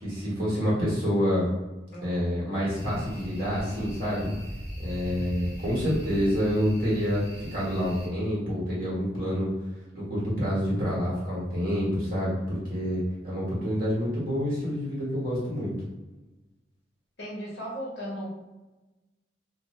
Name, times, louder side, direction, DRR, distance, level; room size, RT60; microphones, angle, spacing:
voice 1, 0.0-1.5 2.0-4.3 4.8-9.5 9.9-15.7, equal, 50° right, -7 dB, 1.2 m, -27 dB
sound 1, 2.8-8.1, equal, 15° right, 1.4 m, -39 dB
voice 2, 17.2-18.3, equal, 60° left, -4 dB, 0.9 m, -36 dB
2.5 x 2.3 x 3.0 m, 1.1 s
head